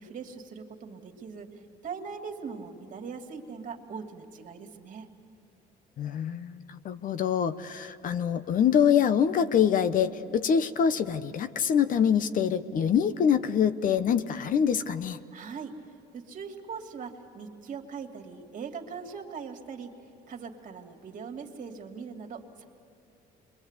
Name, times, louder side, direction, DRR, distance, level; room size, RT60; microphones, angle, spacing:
voice 1, 0.0-5.1 15.3-15.7 16.1-19.9 20.3-22.6, right 5 dB, 50° right, 3 dB, 2.5 m, -41 dB
voice 2, 6.0-15.2, left 8 dB, 55° left, 12 dB, 0.9 m, -25 dB
28.0 x 23.0 x 8.2 m, 2.6 s
cardioid pair, 110°, 17 cm